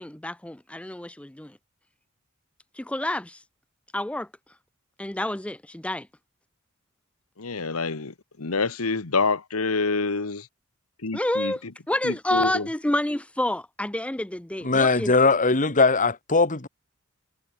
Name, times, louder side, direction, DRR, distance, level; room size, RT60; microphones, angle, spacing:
voice 1, 0.0-1.5 2.8-3.4 3.9-4.3 5.0-6.1 11.1-15.1, left 1 dB, 5° left, 0.5 m, -29 dB
voice 2, 7.4-10.5 11.0-11.7 12.0-12.7, left 4 dB, 75° left, 1.3 m, -27 dB
voice 3, 14.6-16.7, left 3 dB, 35° left, 2.0 m, -20 dB
head